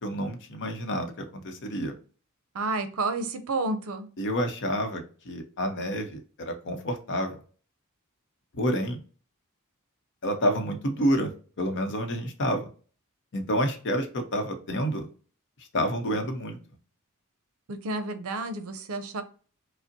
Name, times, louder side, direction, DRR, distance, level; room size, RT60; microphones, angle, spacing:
voice 1, 0.0-1.9 4.2-7.4 8.5-9.0 10.2-11.3 11.6-12.7 13.3-15.1 15.7-16.6, equal, 55° left, 5 dB, 0.7 m, -29 dB
voice 2, 2.5-4.1 17.7-19.2, right 3 dB, 70° right, 9 dB, 0.6 m, -30 dB
5.2 x 2.0 x 2.6 m, 0.39 s
head